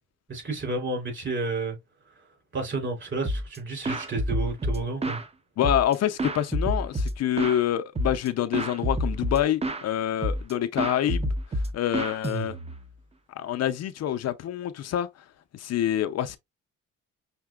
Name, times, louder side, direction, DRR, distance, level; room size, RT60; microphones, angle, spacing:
voice 1, 0.3-1.8 2.5-5.2, right 3 dB, 40° right, 3.1 m, -31 dB
sound 1, 3.2-3.6 3.8-5.3 5.6-7.6 8.0-8.3 8.5-9.9 10.2-10.5 10.8-12.9, equal, 20° right, 0.6 m, -28 dB
voice 2, 5.6-11.3 11.7-12.5 13.4-15.1 15.5-16.4, left 11 dB, 60° left, 0.5 m, -26 dB
5.8 x 2.8 x 2.3 m
cardioid pair, 90°, 30 cm